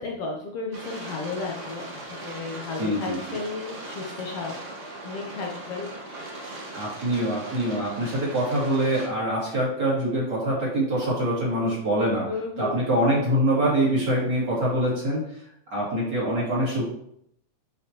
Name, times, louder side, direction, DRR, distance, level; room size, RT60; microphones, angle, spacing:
voice 1, 0.0-4.5 5.0-6.5 12.2-12.8, left 4 dB, 80° left, 0 dB, 1.3 m, -34 dB
sound 1, 0.7-9.1, right 2 dB, 65° right, 0.7 m, -39 dB
voice 2, 2.7-3.2 6.7-12.3 12.6-15.2 15.7-16.8, right 1 dB, 35° right, -7 dB, 3.0 m, -24 dB
9.7 x 5.1 x 3.0 m, 0.73 s
omnidirectional pair, 3.7 m